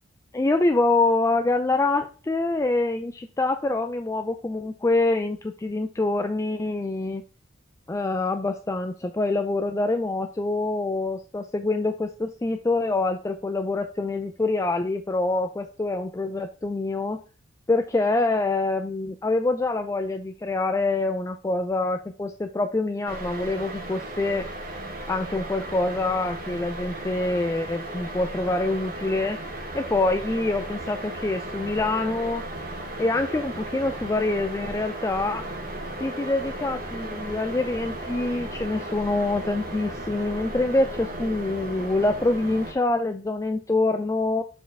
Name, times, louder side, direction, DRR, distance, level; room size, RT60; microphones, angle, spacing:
voice 1, 0.3-7.2 7.9-17.2 17.7-24.4 25.1-29.4 29.7-32.4 33.0-35.4 36.0-44.4, left 2 dB, 15° left, 7 dB, 0.3 m, -25 dB
sound 1, 23.1-42.7, right 1 dB, 50° right, 1.4 m, -35 dB
7.4 x 4.4 x 3.4 m, 0.36 s
head